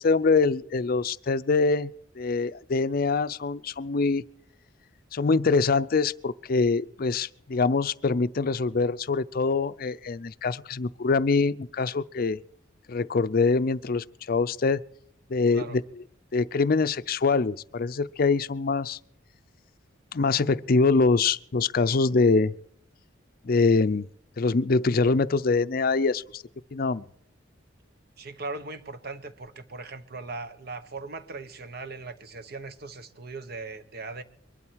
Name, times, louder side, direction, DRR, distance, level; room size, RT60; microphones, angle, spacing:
voice 1, 0.0-4.2 5.1-12.4 12.9-14.8 15.3-15.8 16.3-19.0 20.1-22.5 23.4-24.0 24.4-26.4 26.7-27.0, left 4 dB, 50° left, 0.5 m, -24 dB
voice 2, 28.2-34.2, right 3 dB, 55° right, 1.1 m, -39 dB
23.0 x 12.0 x 4.6 m
head